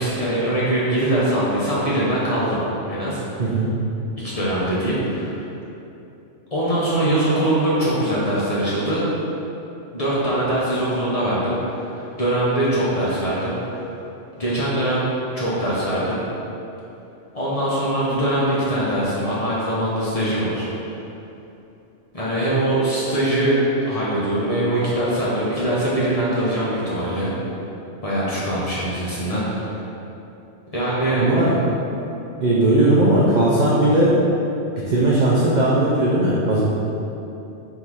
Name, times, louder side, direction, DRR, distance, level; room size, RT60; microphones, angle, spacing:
voice 1, 0.0-2.6 2.9-3.5 4.2-5.4 6.5-9.0 9.9-13.9 14.4-15.0 15.3-16.2 17.3-20.7 22.1-23.6 23.9-27.3 28.0-29.8 30.7-31.2, right 1 dB, 35° left, -8 dB, 0.7 m, -22 dB
voice 2, 3.4-3.7 31.2-31.6 32.4-34.1 34.9-36.6, right 1 dB, 55° right, -7 dB, 0.5 m, -17 dB
3.7 x 2.7 x 4.6 m, 2.9 s
omnidirectional pair, 1.3 m